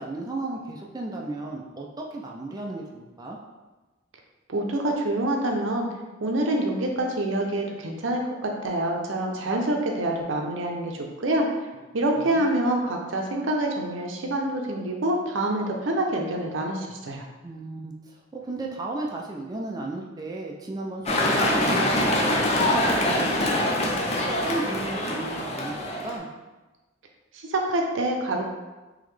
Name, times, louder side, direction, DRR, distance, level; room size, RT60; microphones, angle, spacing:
voice 1, 0.0-3.4 12.2-12.5 17.4-23.7 24.2-26.3, right 2 dB, 20° right, -1 dB, 0.4 m, -35 dB
voice 2, 4.5-5.9 6.2-11.5 11.9-17.2 27.3-28.4, right 1 dB, 80° right, 1 dB, 0.6 m, -26 dB
sound 1, 21.1-26.2, left 1 dB, 35° left, 0.5 m, -24 dB
3.9 x 3.0 x 3.2 m, 1.2 s
head